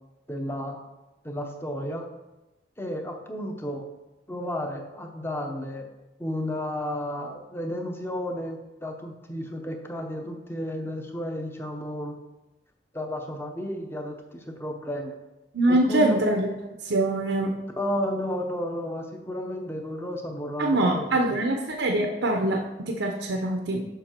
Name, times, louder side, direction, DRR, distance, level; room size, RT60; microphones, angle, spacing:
voice 1, 0.3-0.8 1.2-2.1 2.8-3.8 4.3-5.9 6.2-12.2 12.9-15.1 15.7-16.2 17.8-21.2, equal, 10° left, 3 dB, 0.8 m, -32 dB
voice 2, 15.5-16.5 16.8-17.6 20.6-23.9, right 1 dB, 80° right, 3 dB, 0.8 m, -24 dB
6.9 x 5.7 x 4.4 m, 1.0 s
head